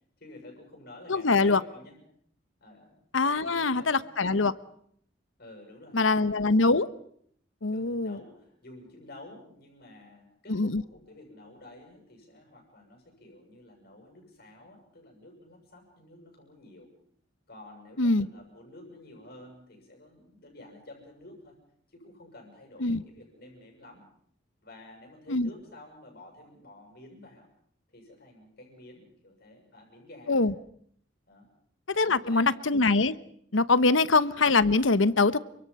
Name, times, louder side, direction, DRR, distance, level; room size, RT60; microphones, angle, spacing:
voice 1, 0.2-2.0 2.6-3.0 3.2-4.4 5.4-6.6 7.7-16.9 17.5-21.6 21.9-24.1 24.6-27.5 27.9-30.5 31.3-31.5 32.0-32.6 33.8-34.0, left 1 dB, 55° left, 1 dB, 7.3 m, -50 dB
voice 2, 1.1-1.6 3.1-4.5 5.9-6.9 7.6-8.2 10.5-10.8 18.0-18.3 22.8-23.0 25.3-25.5 30.3-30.5 31.9-33.2 33.5-35.4, left 3 dB, 80° left, 15 dB, 1.1 m, -23 dB
29.5 x 25.0 x 5.6 m, 0.65 s
head